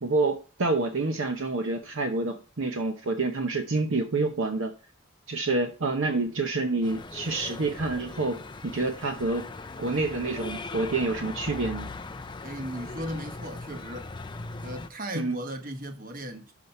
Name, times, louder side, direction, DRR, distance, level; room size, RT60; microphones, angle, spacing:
voice 1, 0.0-4.7 5.3-9.5 9.8-11.9 15.1-15.4, right 3 dB, 60° right, 0.8 m, -28 dB
sound 1, 6.8-14.9, left 3 dB, 20° left, 0.4 m, -39 dB
voice 2, 12.4-14.1 14.6-16.7, equal, 40° right, 1.2 m, -37 dB
6.3 x 5.6 x 5.4 m
head